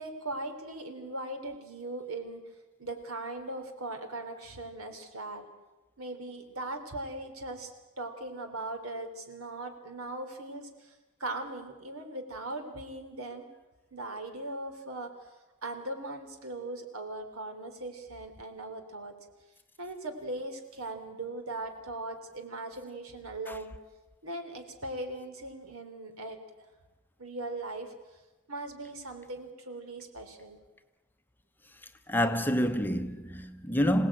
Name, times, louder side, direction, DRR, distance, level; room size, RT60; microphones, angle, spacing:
voice 1, 0.0-2.4 2.8-5.5 6.0-13.5 13.9-15.1 15.6-19.2 19.8-23.7 24.2-26.4 27.2-27.9 28.5-30.6, right 2 dB, 70° right, 3.5 m, -39 dB
voice 2, 32.1-34.1, equal, 10° left, 0.9 m, -27 dB
27.0 x 17.5 x 9.0 m
head